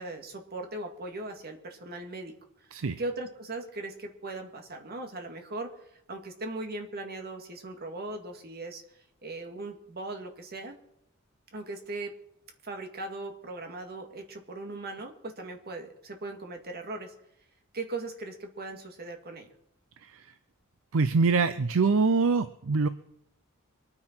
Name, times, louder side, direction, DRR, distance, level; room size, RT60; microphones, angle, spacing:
voice 1, 0.0-2.4 2.7-8.8 9.2-10.8 11.5-12.1 12.6-17.1 17.7-19.5, right 2 dB, 45° right, 4 dB, 2.0 m, -39 dB
voice 2, 20.0-20.3 20.9-22.9, right 4 dB, 65° right, 12 dB, 0.6 m, -24 dB
23.5 x 9.7 x 4.5 m, 0.77 s
head